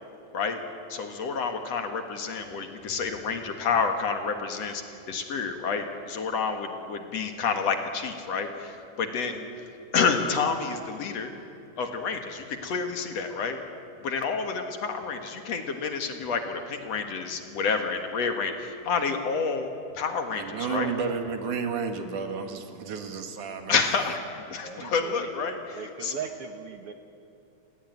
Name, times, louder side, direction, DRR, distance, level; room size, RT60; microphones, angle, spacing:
voice 1, 0.9-4.8 5.1-9.5 9.9-11.3 11.8-13.6 14.0-19.7 19.9-20.9 23.7-26.2, left 5 dB, 60° left, 5 dB, 2.6 m, -29 dB
voice 2, 20.3-23.8, right 5 dB, 75° right, 5 dB, 3.3 m, -31 dB
voice 3, 24.6-25.3 25.7-26.9, right 7 dB, 60° right, 5 dB, 1.8 m, -38 dB
28.5 x 17.0 x 9.5 m, 2.7 s
omnidirectional pair, 3.6 m